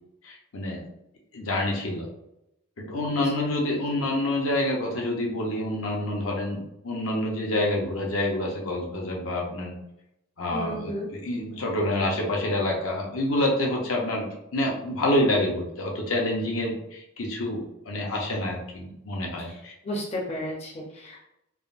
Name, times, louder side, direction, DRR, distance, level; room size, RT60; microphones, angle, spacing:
voice 1, 0.2-0.8 1.3-2.1 2.8-9.8 10.4-19.7, left 1 dB, 75° left, -1 dB, 0.7 m, -27 dB
voice 2, 10.5-11.1 19.8-21.2, equal, 30° left, -2 dB, 0.5 m, -33 dB
3.6 x 2.1 x 2.4 m, 0.83 s
head